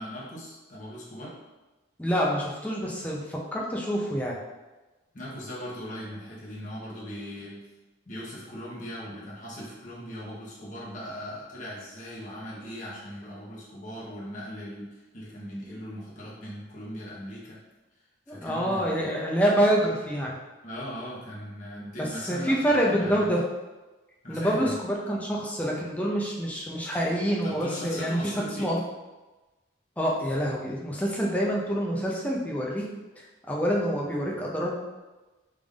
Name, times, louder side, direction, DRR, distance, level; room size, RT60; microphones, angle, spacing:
voice 1, 0.0-1.3 5.1-7.6 8.1-17.6 18.3-19.0 20.6-23.3 24.2-24.8 27.4-28.7, equal, 40° left, -6 dB, 0.9 m, -39 dB
voice 2, 2.0-4.4 18.3-20.3 22.3-23.4 24.3-28.8 30.0-32.9 33.2-34.7, equal, 10° left, -3 dB, 0.5 m, -27 dB
3.4 x 2.5 x 3.5 m, 1.1 s
head